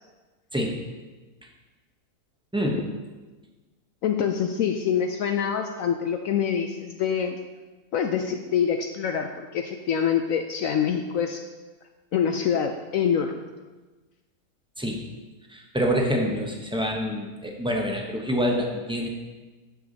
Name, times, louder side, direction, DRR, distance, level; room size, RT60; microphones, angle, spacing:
voice 1, 4.0-7.4 7.9-11.4 12.1-13.3, left 8 dB, 70° left, 5 dB, 0.8 m, -25 dB
voice 2, 15.5-19.1, equal, 5° right, 0 dB, 0.6 m, -26 dB
10.0 x 6.9 x 4.0 m, 1.3 s
omnidirectional pair, 1.8 m